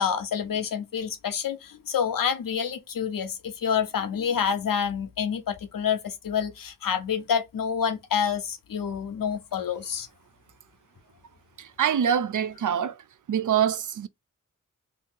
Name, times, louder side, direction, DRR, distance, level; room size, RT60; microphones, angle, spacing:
voice 1, 0.0-10.1, left 7 dB, 90° left, 0.7 m, -28 dB
voice 2, 11.6-13.0 13.3-14.1, right 8 dB, 65° right, 0.5 m, -25 dB
2.8 x 2.6 x 3.6 m
cardioid pair, 45°, 33 cm